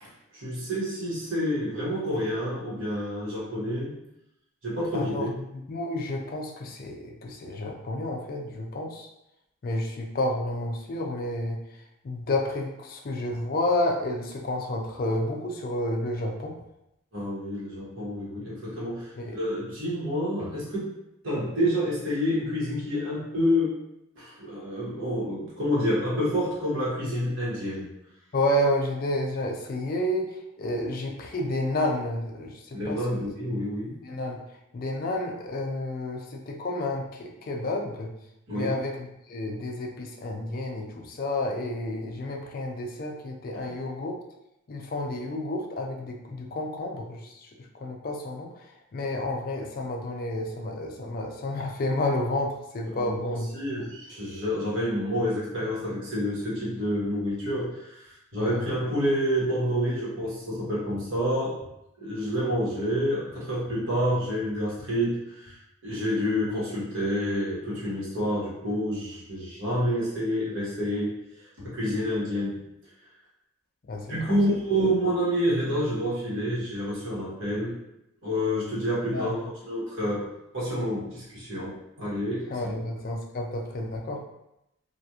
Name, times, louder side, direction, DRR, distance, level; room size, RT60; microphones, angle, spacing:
voice 1, 0.0-3.9 4.6-5.3 17.1-20.9 21.2-23.7 24.1-27.9 32.7-34.0 38.5-38.7 43.6-43.7 52.9-61.7 62.0-65.6 65.8-71.1 71.6-72.6 74.1-77.7 78.2-79.4 79.6-82.7, equal, 65° right, -8 dB, 1.1 m, -28 dB
voice 2, 4.9-5.2 5.5-9.1 9.6-11.6 12.0-16.6 19.2-19.4 28.3-33.0 34.0-34.4 34.7-38.1 38.5-44.1 44.7-47.5 47.8-48.5 48.9-53.5 53.8-53.9 58.3-58.7 73.9-74.4 79.1-79.4 82.5-84.2, left 1 dB, 45° left, 1 dB, 0.4 m, -30 dB
2.8 x 2.4 x 2.3 m, 0.85 s
head